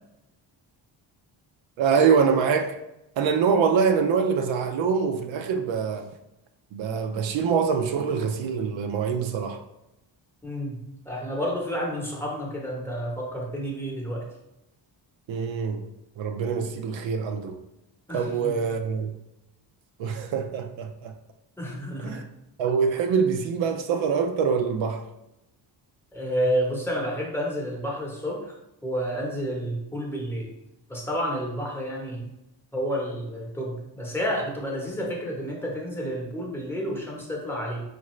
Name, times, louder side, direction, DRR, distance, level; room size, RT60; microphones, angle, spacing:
voice 1, 1.8-2.8 3.2-6.1 6.7-9.6 15.3-15.8 16.2-17.6 18.1-19.1 20.0-21.1 22.0-22.2 22.6-25.0, right 6 dB, 75° right, 6 dB, 0.6 m, -24 dB
voice 2, 10.4-14.2 18.1-18.6 21.6-22.2 26.1-28.5 28.8-30.5 30.9-32.3 32.7-37.8, equal, 5° left, -2 dB, 0.8 m, -30 dB
5.2 x 2.6 x 3.0 m, 0.90 s
wide cardioid pair, 145°, 46 cm